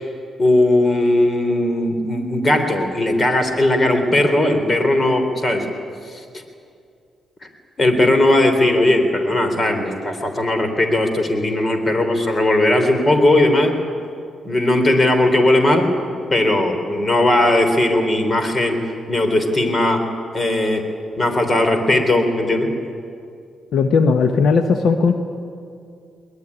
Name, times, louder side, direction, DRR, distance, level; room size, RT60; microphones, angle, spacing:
voice 1, 0.4-5.6 6.1-6.2 7.8-13.7 14.4-15.9 16.3-18.8 19.1-20.0 20.3-20.8 21.2-22.7, left 1 dB, 30° left, 6 dB, 3.8 m, -17 dB
voice 2, 23.7-25.1, left 5 dB, 75° left, 7 dB, 1.2 m, -16 dB
22.0 x 20.5 x 9.9 m, 2.4 s
cardioid pair, 85°, 0 cm